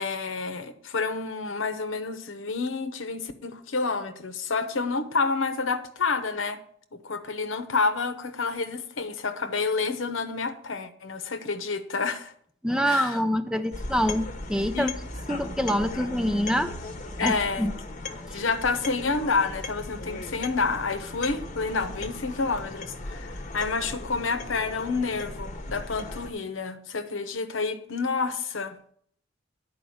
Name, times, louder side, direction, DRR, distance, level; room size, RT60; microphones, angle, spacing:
voice 1, 0.0-6.6 6.9-12.3 12.8-13.2 14.7-14.9 17.2-17.7 18.3-28.8, left 4 dB, 85° left, 9 dB, 1.0 m, -29 dB
voice 2, 12.6-14.9 15.3-16.7 17.2-17.3 17.6-17.7, equal, 5° right, 9 dB, 0.5 m, -25 dB
sound 1, 13.7-26.3, left 2 dB, 40° left, 1.0 m, -38 dB
10.5 x 4.9 x 6.4 m, 0.62 s
head